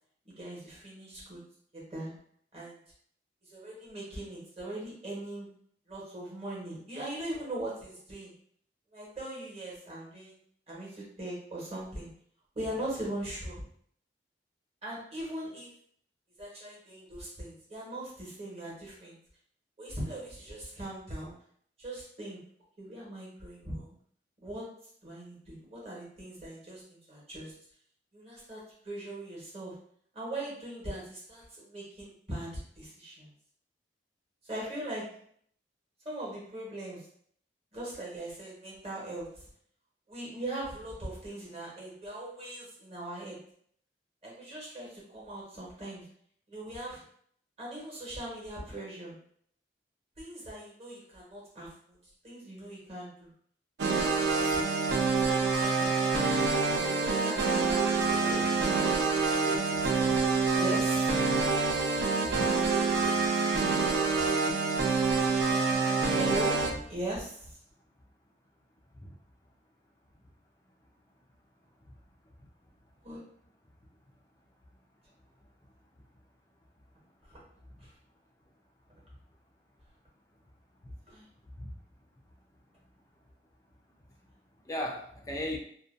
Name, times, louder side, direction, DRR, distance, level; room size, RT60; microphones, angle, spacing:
voice 1, 0.2-1.4 1.7-2.1 2.5-2.8 3.4-5.5 5.9-8.3 8.9-10.4 10.7-12.1 12.5-13.6 14.8-15.7 16.4-19.2 19.8-21.3 21.8-22.4 22.8-23.9 24.4-24.6 25.0-27.5 28.1-29.7 30.1-33.3 34.4-35.1 36.0-37.0 37.7-39.4 40.1-43.4 44.2-46.0 46.5-47.0 47.6-49.1 50.2-52.0 52.2-53.3 54.1-55.4 55.8-55.9 56.6-58.4 58.7-58.9 59.4-59.6 60.0-60.1 60.6-61.0 66.1-67.6 73.0-73.2 77.3-77.4 77.8-77.9 81.1-81.3, right 1 dB, 35° right, 1.0 m, -40 dB
sound 1, 53.8-66.7, right 4 dB, 75° right, 0.4 m, -26 dB
voice 2, 58.2-58.7 61.7-62.5 68.9-69.1 77.8-77.9 80.8-80.9 81.5-81.7 84.6-85.6, left 1 dB, 20° left, 0.3 m, -38 dB
2.5 x 2.1 x 2.4 m
head